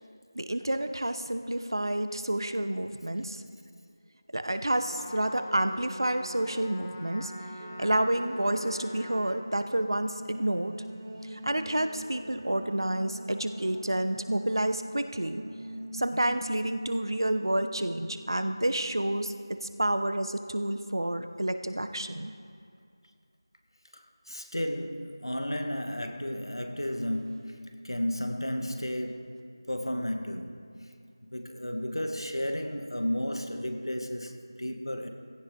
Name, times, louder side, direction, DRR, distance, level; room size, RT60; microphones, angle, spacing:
voice 1, 0.3-3.4 4.3-7.3 7.8-10.7 11.2-15.4 15.9-22.3, right 1 dB, 70° right, 9 dB, 0.9 m, -29 dB
Trumpet, 4.8-9.3, left 1 dB, 20° left, 1.2 m, -44 dB
sound 1, 7.6-21.7, equal, 20° right, 1.6 m, -45 dB
voice 2, 24.3-29.4 29.7-30.7 31.3-35.1, equal, 85° left, 5 dB, 1.6 m, -33 dB
16.5 x 14.5 x 3.8 m, 2.3 s
figure-of-eight pair, 175°, 2 cm